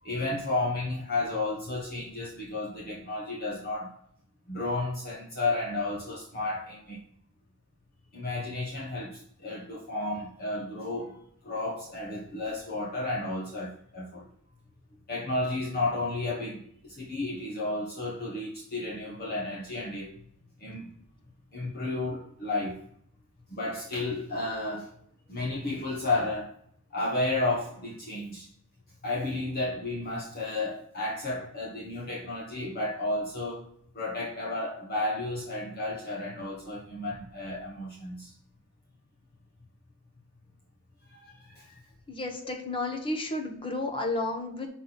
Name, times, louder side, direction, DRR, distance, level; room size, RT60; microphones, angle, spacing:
voice 1, 0.0-3.9 4.5-7.0 8.1-14.3 15.1-20.1 20.6-20.9 21.5-22.8 23.5-24.9 25.3-26.5 26.9-28.5 29.0-38.3 41.1-41.8, left 2 dB, 45° left, -4 dB, 1.2 m, -32 dB
voice 2, 42.1-44.7, left 2 dB, 25° left, 3 dB, 1.1 m, -32 dB
6.1 x 4.1 x 5.9 m, 0.67 s
head